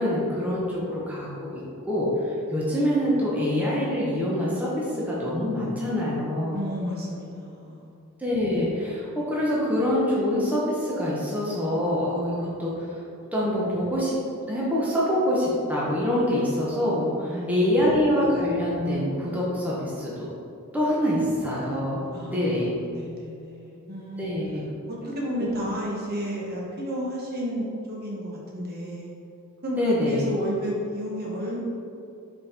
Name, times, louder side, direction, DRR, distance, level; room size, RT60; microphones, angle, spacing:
voice 1, 0.0-1.6 1.9-6.6 8.2-12.7 13.3-14.2 14.5-20.3 20.7-22.0 22.3-22.7 24.2-24.6 25.4-25.5 29.8-30.2, left 1 dB, 5° right, -7 dB, 0.9 m, -25 dB
voice 2, 6.5-7.9 17.3-17.9 21.9-24.3 24.9-29.1 29.6-31.6, equal, 45° right, -4 dB, 1.3 m, -32 dB
5.6 x 4.1 x 4.3 m, 2.7 s
head